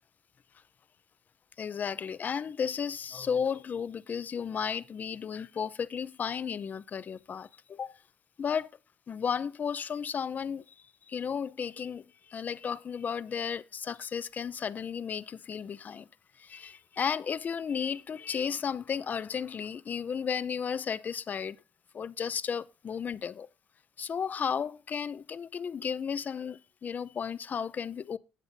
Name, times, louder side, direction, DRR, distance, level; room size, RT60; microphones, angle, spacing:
voice 1, 1.6-8.0 8.4-8.7 9.1-10.6 11.1-12.0 12.3-16.0 16.4-21.6 21.9-23.5 24.0-28.2, left 7 dB, 45° left, 0.7 m, -34 dB
19.0 x 7.6 x 2.7 m
supercardioid pair, 80°, 4 cm